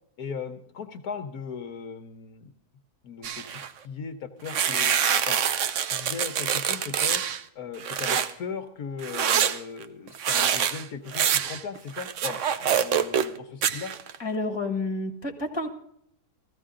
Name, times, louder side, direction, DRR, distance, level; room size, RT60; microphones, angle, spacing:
voice 1, 0.2-2.5 3.0-4.9 5.2-5.4 5.9-7.2 7.5-13.9, left 6 dB, 70° left, 7 dB, 1.4 m, -38 dB
sound 1, 3.2-3.7 4.5-7.4 7.8-8.3 9.0-13.4 13.6-14.2, right 8 dB, 60° right, 0.9 m, -25 dB
voice 2, 14.2-15.7, left 2 dB, 15° left, 3 dB, 1.7 m, -30 dB
15.0 x 15.0 x 3.8 m, 0.70 s
omnidirectional pair, 1.7 m